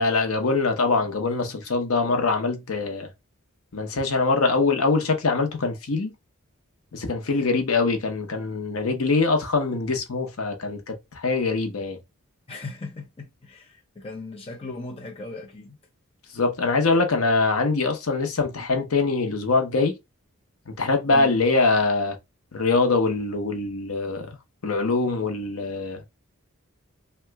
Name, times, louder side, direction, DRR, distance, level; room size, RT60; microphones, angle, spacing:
voice 1, 0.0-3.1 3.7-6.1 6.9-12.0 16.3-20.0 20.7-22.2 22.5-24.4 24.6-26.0, left 3 dB, 70° left, 0.7 m, -23 dB
voice 2, 7.3-7.7 12.5-15.8 21.1-21.3, left 3 dB, 25° left, 0.5 m, -38 dB
2.9 x 2.2 x 3.3 m
head